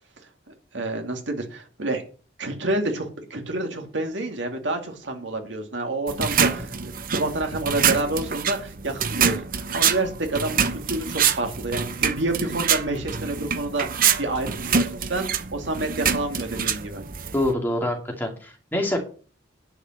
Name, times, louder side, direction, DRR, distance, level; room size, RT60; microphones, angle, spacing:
voice 1, 0.7-2.0 2.4-17.0, right 2 dB, 80° right, 4 dB, 2.3 m, -28 dB
sound 1, 6.1-17.5, right 7 dB, 50° right, 0.8 m, -25 dB
voice 2, 17.3-19.0, left 1 dB, 10° left, 1 dB, 2.4 m, -25 dB
10.5 x 5.3 x 7.7 m, 0.40 s
head